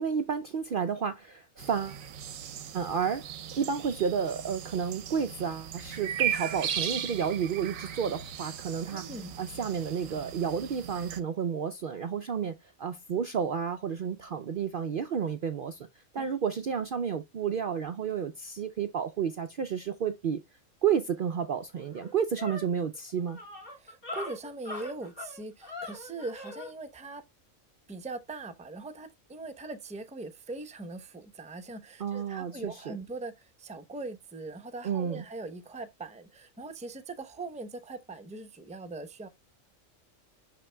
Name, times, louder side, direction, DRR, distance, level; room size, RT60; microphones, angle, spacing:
voice 1, 0.0-2.0 2.7-3.3 3.6-9.1 9.4-15.9 16.1-20.4 20.8-23.4 32.0-33.0 34.8-35.2, right 7 dB, 55° right, 0.6 m, -31 dB
sound 1, 1.6-11.2, right 9 dB, 90° right, 1.2 m, -37 dB
voice 2, 8.9-9.3 16.2-16.3 23.8-27.2 27.9-39.3, right 3 dB, 10° right, 0.5 m, -41 dB
sound 2, 21.3-21.4 21.7-26.7, left 2 dB, 45° left, 2.3 m, -42 dB
11.0 x 3.8 x 2.2 m
omnidirectional pair, 1.4 m